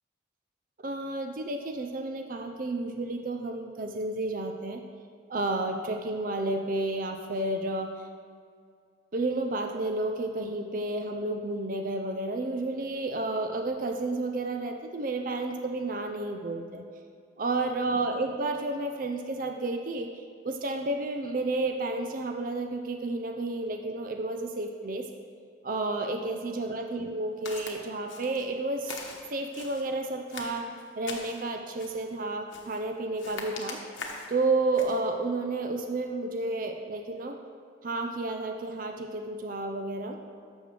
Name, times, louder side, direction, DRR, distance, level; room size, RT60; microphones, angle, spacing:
voice 1, 0.8-4.8 5.3-7.9 9.1-16.8 17.4-20.1 20.4-25.1 25.6-29.0 29.3-30.7 31.0-33.8 34.3-37.4 37.8-40.2, right 2 dB, 45° right, 4 dB, 0.5 m, -31 dB
Walk footsteps, 27.5-27.8 28.1-28.5 28.8-29.9 30.3-31.4 31.8-32.1 32.5-32.8 33.2-34.3 34.7-35.0, left 4 dB, 85° left, 1.1 m, -41 dB
12.5 x 6.4 x 3.3 m, 2.2 s
head